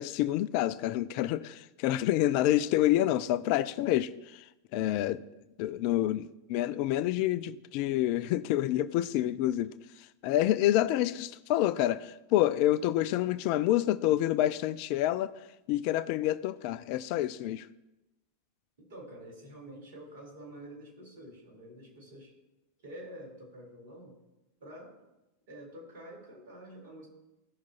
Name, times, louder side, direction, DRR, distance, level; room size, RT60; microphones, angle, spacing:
voice 1, 0.0-5.2 5.6-15.3 15.7-17.7, left 13 dB, 45° left, 0.4 m, -28 dB
voice 2, 18.9-22.3 22.8-24.2 24.6-25.0 25.5-27.1, right 1 dB, 55° right, 3.8 m, -48 dB
17.5 x 5.8 x 2.9 m
figure-of-eight pair, 90°, 0 cm